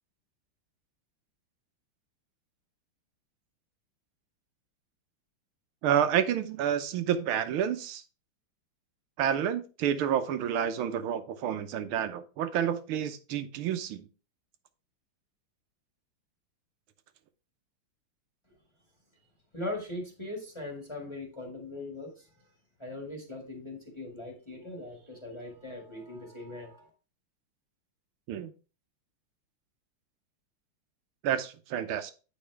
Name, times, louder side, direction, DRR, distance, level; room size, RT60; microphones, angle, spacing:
voice 1, 5.8-8.0 9.2-14.1 28.3-28.5 31.2-32.1, right 9 dB, 85° right, 10 dB, 1.6 m, -29 dB
voice 2, 19.5-22.3 22.8-26.9, left 2 dB, 15° left, 0 dB, 1.5 m, -40 dB
8.6 x 5.3 x 3.3 m, 0.34 s
omnidirectional pair, 2.3 m